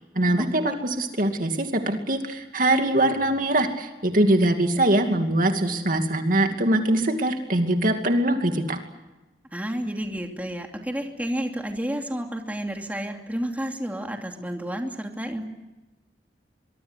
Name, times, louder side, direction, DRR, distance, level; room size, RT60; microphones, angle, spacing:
voice 1, 0.1-8.8, right 1 dB, 50° right, 5 dB, 2.5 m, -22 dB
voice 2, 9.5-15.4, equal, 10° right, 3 dB, 2.8 m, -31 dB
24.5 x 23.0 x 8.2 m, 1.1 s
head